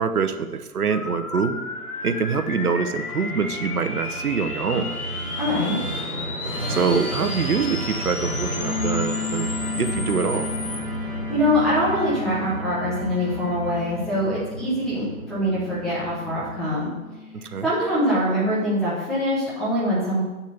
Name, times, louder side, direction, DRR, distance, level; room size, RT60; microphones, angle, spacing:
voice 1, 0.0-1.6 2.0-4.9 6.7-9.5 9.8-10.5 17.3-17.7, right 5 dB, 80° right, 8 dB, 1.2 m, -24 dB
sound 1, 0.9-10.8, left 4 dB, 80° left, 1.7 m, -34 dB
Musical instrument, 1.5-16.8, right 1 dB, 15° right, 2.7 m, -33 dB
voice 2, 5.4-5.8 11.3-16.9 17.6-20.2, equal, ahead, -10 dB, 1.0 m, -23 dB
sound 2, 8.6-18.3, left 5 dB, 35° left, 2.9 m, -34 dB
7.6 x 7.3 x 6.8 m, 1.1 s
hypercardioid pair, 165°, 45 cm